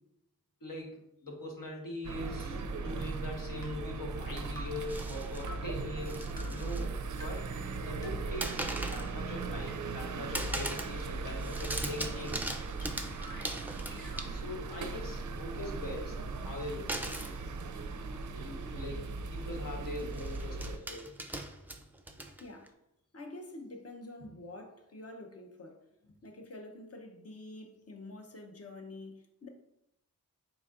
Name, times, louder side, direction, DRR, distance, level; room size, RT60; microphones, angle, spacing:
voice 1, 0.6-7.5 7.8-12.4 14.3-16.2 16.4-17.0 18.3-21.1, left 1 dB, 70° left, 1.3 m, -42 dB
sound 1, 2.0-20.8, right 3 dB, 60° right, 0.5 m, -38 dB
sound 2, 2.6-2.7 3.6-3.7 4.6-4.7 5.5-5.6 6.4-6.5 7.2-7.3 8.0-8.1 8.9-9.0 9.7-9.8 10.5-10.6 11.3-11.4 12.0-12.1 12.8-12.9 13.1-14.3, equal, 10° left, 1.3 m, -48 dB
sound 3, 4.9-5.4 6.0-6.9 7.2-7.7 8.4-9.1 9.5-10.0 10.3-11.0 11.3-14.6 16.9-17.4 18.3-18.4 18.7-18.9 20.0-22.7, right 1 dB, 5° right, 0.5 m, -40 dB
voice 2, 22.4-22.8 23.1-29.5, left 2 dB, 45° left, 0.8 m, -47 dB
4.5 x 4.0 x 2.5 m
cardioid pair, 55°, 35 cm